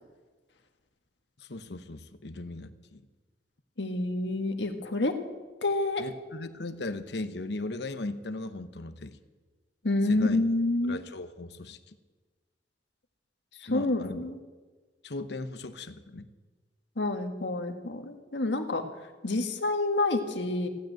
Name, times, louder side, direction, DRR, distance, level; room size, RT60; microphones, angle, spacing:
voice 1, 1.4-3.0 6.0-9.2 10.1-10.4 10.8-11.8 13.7-14.2 15.0-16.3, left 2 dB, 70° left, 9 dB, 1.0 m, -37 dB
voice 2, 3.8-5.1 5.6-6.0 9.8-11.0 13.6-14.4 17.0-18.8 19.2-20.7, left 2 dB, 85° left, 6 dB, 1.6 m, -28 dB
15.5 x 9.1 x 9.1 m, 1.3 s
head